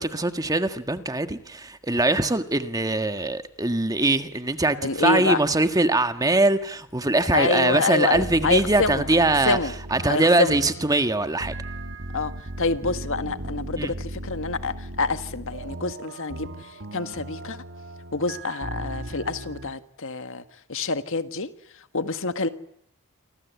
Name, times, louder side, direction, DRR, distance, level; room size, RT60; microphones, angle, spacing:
voice 1, 0.0-9.6 9.9-11.5 13.8-13.9, right 2 dB, 15° right, 1.5 m, -22 dB
voice 2, 4.8-5.4 7.3-9.7 10.1-10.6 12.1-12.3 12.6-17.6 18.1-20.4 20.7-21.5 21.9-22.5, left 3 dB, 60° left, 1.7 m, -27 dB
sound 1, 8.1-19.7, right 1 dB, 55° right, 2.2 m, -37 dB
28.5 x 25.5 x 8.3 m
head